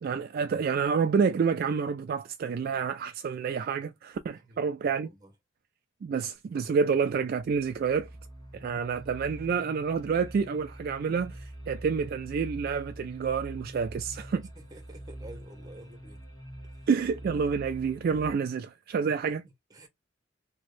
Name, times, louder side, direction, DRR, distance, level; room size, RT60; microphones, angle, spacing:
voice 1, 0.0-5.1 6.0-8.1 8.6-11.4 11.7-14.5 16.9-19.4, right 6 dB, 50° right, 0.3 m, -28 dB
voice 2, 4.4-5.3 14.5-16.3 16.6-16.9 19.0-19.9, right 1 dB, 20° right, 1.0 m, -51 dB
sound 1, 7.3-18.3, right 1 dB, 20° left, 1.5 m, -45 dB
3.0 x 2.6 x 3.1 m
head